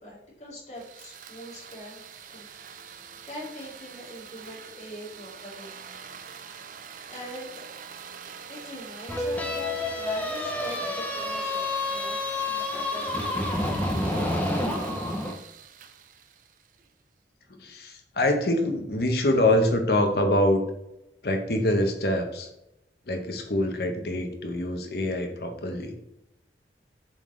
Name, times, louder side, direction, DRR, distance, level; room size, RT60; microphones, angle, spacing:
voice 1, 0.0-2.5 3.2-5.7 7.1-7.6 8.5-13.9, left 1 dB, 40° left, -4 dB, 2.3 m, -42 dB
sound 1, 0.7-16.9, right 7 dB, 45° right, 0.4 m, -44 dB
sound 2, 9.1-15.3, left 2 dB, 10° left, 0.6 m, -29 dB
voice 2, 17.5-20.6 21.2-22.5 23.1-26.0, left 1 dB, 60° left, 4 dB, 1.0 m, -25 dB
7.4 x 3.9 x 3.2 m, 0.85 s
head